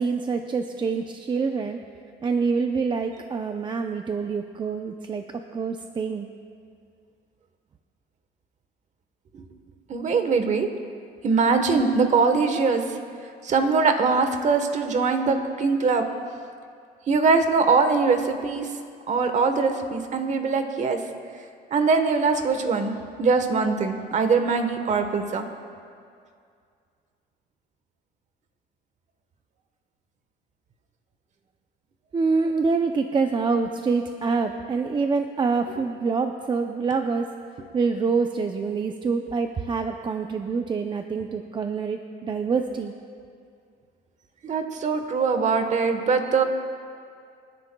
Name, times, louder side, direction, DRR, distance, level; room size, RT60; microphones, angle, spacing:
voice 1, 0.0-1.8 2.2-6.3 32.1-37.3 37.7-42.9, right 4 dB, 25° right, 5 dB, 0.6 m, -26 dB
voice 2, 9.9-10.7 11.2-12.8 13.4-16.1 17.1-18.7 19.1-21.0 21.7-25.4 35.7-35.9 44.4-46.4, right 4 dB, 45° right, 7 dB, 1.2 m, -22 dB
28.0 x 10.5 x 2.3 m, 2.3 s
cardioid pair, 110°, 17 cm